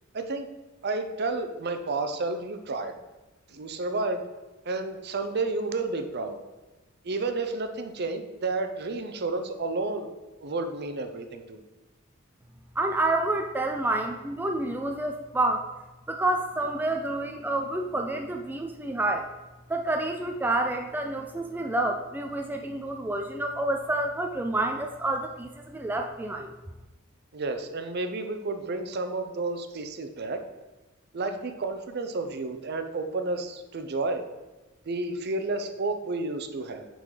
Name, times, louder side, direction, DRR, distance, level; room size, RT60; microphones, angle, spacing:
voice 1, 0.1-0.5 0.8-2.9 3.5-4.2 4.6-6.4 7.0-10.1 10.4-11.6 27.3-30.4 31.1-34.2 34.8-36.9, right 3 dB, 50° right, 7 dB, 0.6 m, -31 dB
voice 2, 12.8-15.7 16.1-19.3 19.7-26.5, right 2 dB, 10° right, 3 dB, 0.3 m, -28 dB
8.3 x 3.9 x 4.9 m, 1.1 s
head